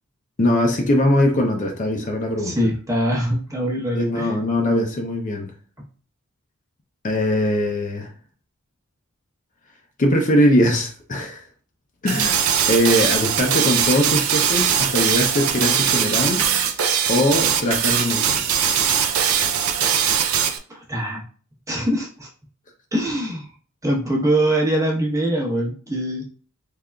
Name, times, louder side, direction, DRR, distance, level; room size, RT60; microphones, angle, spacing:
voice 1, 0.4-2.5 3.9-5.5 7.0-8.1 10.0-11.4 12.0-12.4 12.7-16.5 17.1-18.5, left 1 dB, 35° left, 0.5 m, -21 dB
voice 2, 2.4-4.4 20.7-21.2 21.7-22.3 22.9-23.5 23.8-26.2, right 1 dB, 15° right, 0.9 m, -23 dB
sound 1, 12.1-20.6, right 8 dB, 70° right, 0.4 m, -20 dB
3.7 x 3.3 x 2.3 m
head